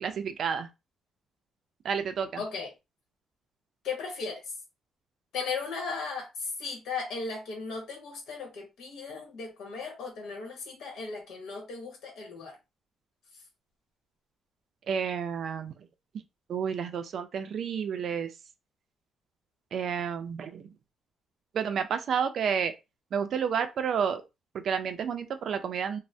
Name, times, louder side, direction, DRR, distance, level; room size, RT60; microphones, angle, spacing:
voice 1, 0.0-0.7 1.8-2.4 14.9-15.7 16.5-18.3 19.7-20.7 21.5-22.7 23.1-24.2 24.5-26.0, right 7 dB, 60° right, 0.4 m, -30 dB
voice 2, 2.4-2.7 3.8-4.4 5.3-6.3 6.6-12.5, left 4 dB, 75° left, 1.0 m, -36 dB
2.5 x 2.0 x 3.2 m
cardioid pair, 90°, 0 cm